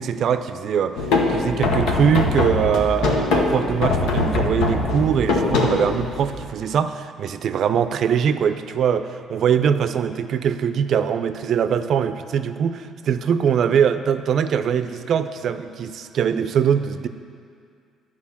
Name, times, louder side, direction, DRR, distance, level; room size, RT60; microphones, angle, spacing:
voice 1, 0.0-17.1, right 8 dB, 60° right, 11 dB, 0.4 m, -22 dB
sound 1, 1.0-6.5, left 3 dB, 85° left, 1.0 m, -22 dB
10.5 x 4.9 x 7.1 m, 2.3 s
supercardioid pair, 85°, 0 cm